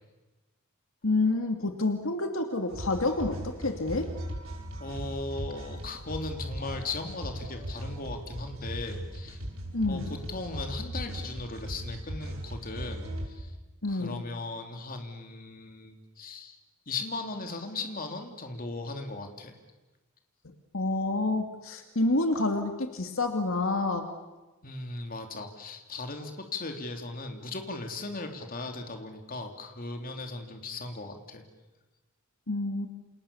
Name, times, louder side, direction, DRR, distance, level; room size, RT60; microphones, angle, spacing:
voice 1, 1.0-4.1 9.7-10.1 13.8-14.2 20.7-24.1 32.5-32.9, left 2 dB, 70° left, 5 dB, 2.4 m, -28 dB
sound 1, 2.7-13.3, equal, 75° right, 5.8 m, -38 dB
voice 2, 4.8-9.4 9.8-13.5 13.9-16.6 16.9-19.6 24.6-31.4, left 3 dB, 45° left, 5 dB, 3.2 m, -38 dB
29.0 x 27.5 x 7.1 m, 1.1 s
head